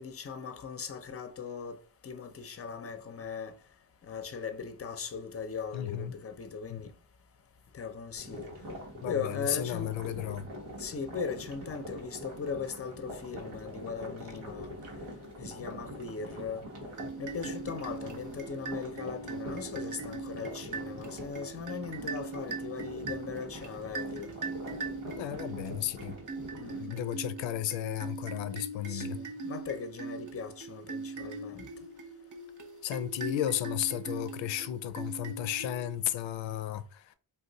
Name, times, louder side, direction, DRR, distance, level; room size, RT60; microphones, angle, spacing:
voice 1, 0.0-1.8 2.0-3.5 4.0-6.9 7.7-8.5 9.0-10.0 10.8-14.7 15.4-16.7 17.2-24.3 26.6-27.1 28.9-31.7, left 5 dB, 30° left, 0.6 m, -39 dB
voice 2, 5.7-6.1 6.7-6.8 9.0-10.5 25.1-26.1 26.8-29.2 32.8-37.1, left 11 dB, 70° left, 0.5 m, -34 dB
sound 1, 8.2-26.8, equal, 90° right, 1.0 m, -44 dB
sound 2, 16.9-36.1, right 4 dB, 40° right, 0.8 m, -41 dB
2.5 x 2.3 x 3.9 m
supercardioid pair, 40°, 47 cm